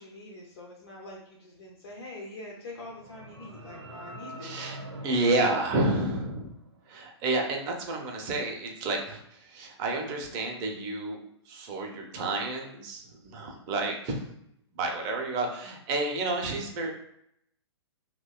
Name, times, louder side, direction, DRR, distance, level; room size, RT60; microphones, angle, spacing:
voice 1, 0.0-4.7, left 2 dB, 55° left, -3 dB, 0.5 m, -44 dB
sound 1, 2.6-6.8, right 1 dB, 85° right, 0.5 m, -45 dB
voice 2, 4.4-4.8 5.0-6.5 6.9-14.2 14.7-16.9, right 2 dB, 25° right, 2 dB, 0.5 m, -30 dB
2.7 x 2.1 x 2.3 m, 0.74 s
figure-of-eight pair, 115°, 15 cm